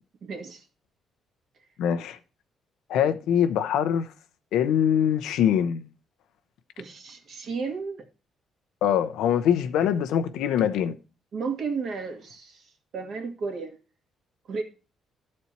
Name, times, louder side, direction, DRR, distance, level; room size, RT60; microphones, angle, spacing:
voice 1, 0.2-0.6 6.8-8.1 11.3-13.8 14.5-14.6, right 4 dB, 65° right, 2.1 m, -33 dB
voice 2, 1.8-2.2 2.9-4.1 4.5-5.9 8.8-10.9, left 9 dB, 90° left, 0.7 m, -23 dB
12.5 x 4.3 x 4.3 m
cardioid pair, 90°, 0 cm